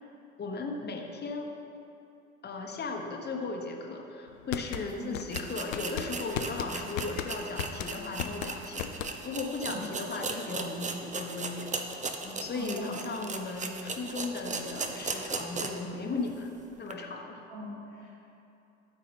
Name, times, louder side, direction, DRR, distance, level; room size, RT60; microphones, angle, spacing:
voice 1, 0.4-1.5 2.4-11.7 12.2-17.4, left 3 dB, 25° left, 1 dB, 1.2 m, -36 dB
sound 1, 4.3-9.5, left 9 dB, 85° left, 0.5 m, -36 dB
sound 2, 4.8-4.9 5.3-15.9 16.3-16.4 16.9-17.0, right 4 dB, 20° right, 0.7 m, -37 dB
voice 2, 12.5-13.0 17.5-18.1, left 1 dB, 65° right, -5 dB, 1.5 m, -40 dB
12.5 x 4.9 x 4.2 m, 2.8 s
hypercardioid pair, 65°, 38 cm